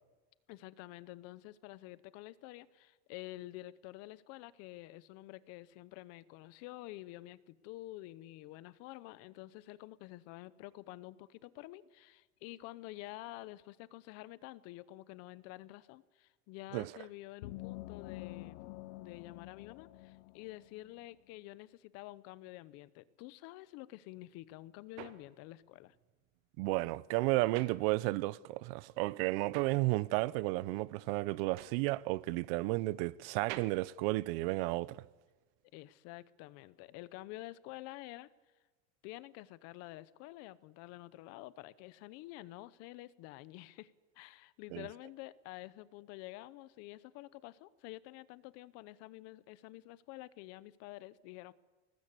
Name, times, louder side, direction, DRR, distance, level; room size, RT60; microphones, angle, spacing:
voice 1, 0.5-18.6 19.0-25.9 35.7-38.3 39.0-51.5, left 17 dB, 45° left, 0.8 m, -49 dB
sound 1, 17.4-21.0, left 18 dB, 90° left, 1.3 m, -47 dB
sound 2, 24.2-28.5 28.8-35.0, right 14 dB, 80° right, 1.7 m, -51 dB
voice 2, 26.6-35.0 44.7-44.9, right 20 dB, 60° right, 0.6 m, -33 dB
22.0 x 19.0 x 8.4 m
cardioid pair, 170°, 34 cm